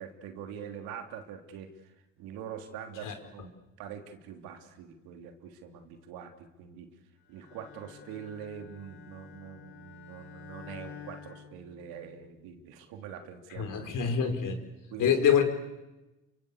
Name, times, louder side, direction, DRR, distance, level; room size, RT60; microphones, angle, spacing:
voice 1, 0.0-3.5 3.8-6.9 7.3-14.0 14.9-15.2, right 8 dB, 80° right, 6 dB, 3.2 m, -44 dB
Bowed string instrument, 7.3-12.3, left 7 dB, 85° left, 4.7 m, -50 dB
voice 2, 13.6-14.6 15.0-15.4, left 7 dB, 60° left, 7 dB, 4.7 m, -25 dB
28.0 x 25.5 x 8.3 m, 1.0 s
supercardioid pair, 85°, 35 cm